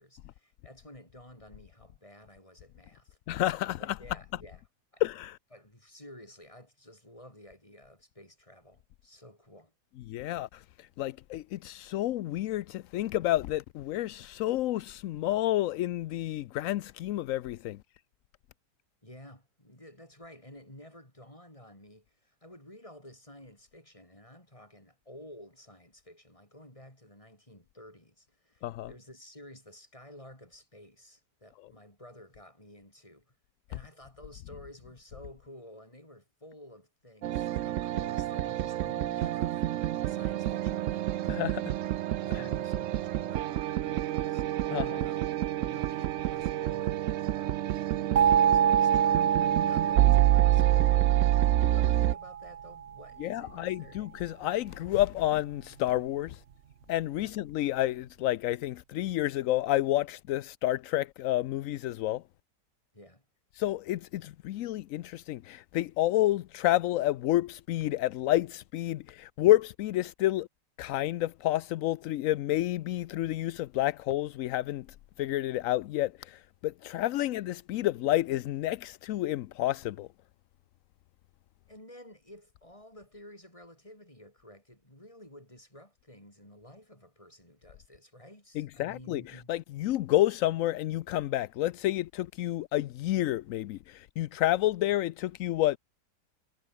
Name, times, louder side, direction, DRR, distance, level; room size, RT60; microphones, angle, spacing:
voice 1, 0.0-3.2 3.8-4.6 4.9-5.0 5.5-9.7 19.0-33.4 33.7-41.8 42.2-45.2 45.6-47.8 48.2-54.3 57.2-57.3 62.9-63.3 81.7-89.5, left 1 dB, 20° left, 7.5 m, -52 dB
voice 2, 3.3-4.0 5.0-5.4 10.1-17.8 28.6-28.9 41.3-41.6 42.3-42.4 44.7-45.0 53.2-56.4 56.9-62.2 63.6-70.5 70.8-74.9 75.2-80.1 88.6-95.8, left 14 dB, 70° left, 0.8 m, -29 dB
sound 1, 37.2-52.1, right 13 dB, 70° right, 0.7 m, -28 dB
sound 2, 48.2-52.9, right 8 dB, 50° right, 0.9 m, -27 dB
omnidirectional pair, 1.8 m